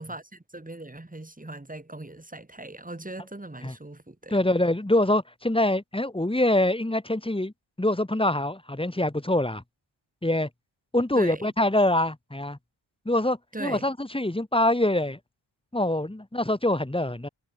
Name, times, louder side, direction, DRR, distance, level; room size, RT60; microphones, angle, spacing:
voice 1, 0.0-4.4 11.1-11.5 13.5-13.9, right 2 dB, 15° right, 7.8 m, -39 dB
voice 2, 4.3-7.5 7.8-9.6 10.2-10.5 10.9-12.6 13.1-15.2 15.7-17.3, left 1 dB, 10° left, 4.2 m, -24 dB
wide cardioid pair, 100°, 46 cm